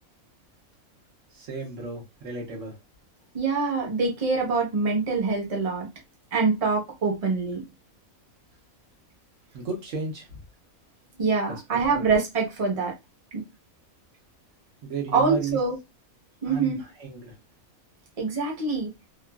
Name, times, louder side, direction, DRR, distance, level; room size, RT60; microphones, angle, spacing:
voice 1, 1.3-2.8 9.5-10.3 11.9-12.0 14.8-15.6 16.5-17.3, right 4 dB, 65° right, 1.1 m, -33 dB
voice 2, 3.3-5.9 6.3-7.6 11.2-12.9 13.3-13.4 15.1-15.8 16.4-16.8 18.2-18.9, right 4 dB, 30° right, 0.8 m, -25 dB
2.9 x 2.4 x 2.2 m
omnidirectional pair, 1.5 m